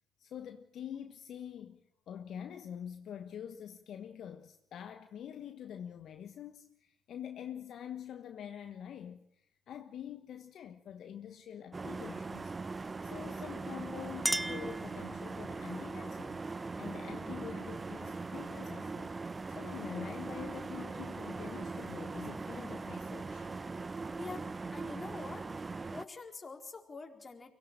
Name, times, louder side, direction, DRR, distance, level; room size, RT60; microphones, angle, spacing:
voice 1, 0.2-12.5 13.0-19.2 19.5-23.5, left 9 dB, 60° left, 1.3 m, -46 dB
sound 1, 11.7-26.1, right 3 dB, 30° right, 0.9 m, -40 dB
Chink clink, 13.7-15.5, right 1 dB, 15° right, 1.3 m, -37 dB
voice 2, 24.7-25.5 25.9-27.5, left 4 dB, 30° left, 4.2 m, -45 dB
24.0 x 17.5 x 8.9 m
hypercardioid pair, 55°, 0 cm